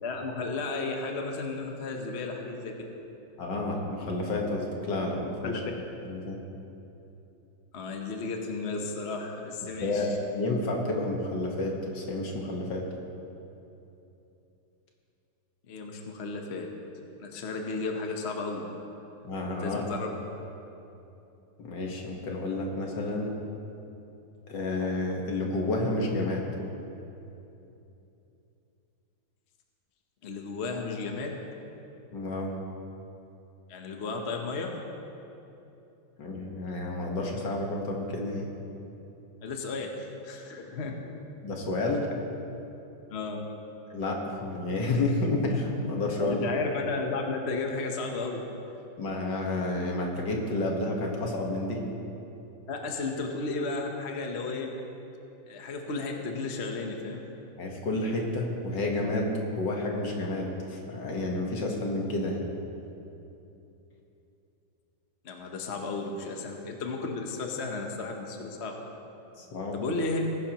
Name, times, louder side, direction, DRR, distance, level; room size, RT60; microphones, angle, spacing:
voice 1, 0.0-2.8 5.4-5.7 7.7-10.1 15.7-16.7 17.2-18.6 19.6-20.1 30.2-31.4 33.7-34.8 39.4-40.9 43.1-43.5 46.2-48.4 52.7-54.8 55.5-57.2 65.2-68.7 69.7-70.2, left 3 dB, 45° left, 2 dB, 1.0 m, -33 dB
voice 2, 3.4-5.6 6.1-6.4 9.8-12.9 19.2-19.9 21.6-23.4 24.5-26.5 32.1-32.5 36.2-38.5 41.4-42.1 43.9-46.4 49.0-51.8 57.6-62.4 69.4-69.8, left 2 dB, 65° left, 0 dB, 2.0 m, -30 dB
19.5 x 10.5 x 3.0 m, 2.9 s
omnidirectional pair, 2.1 m